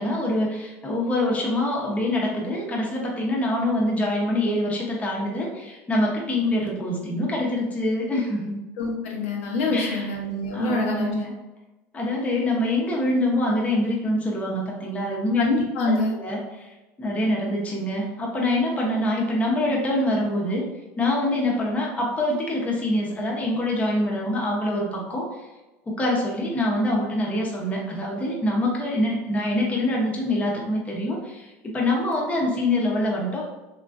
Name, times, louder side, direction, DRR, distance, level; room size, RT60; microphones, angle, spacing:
voice 1, 0.0-8.5 9.7-10.1 10.5-11.3 11.9-15.4 15.8-15.9 16.2-20.7 21.0-25.3 25.9-33.5, left 1 dB, 20° left, -2 dB, 0.7 m, -25 dB
voice 2, 8.8-11.1 15.4-16.1, left 2 dB, 80° left, -1 dB, 0.7 m, -25 dB
2.9 x 2.5 x 2.4 m, 1.1 s
supercardioid pair, 115°, 7 cm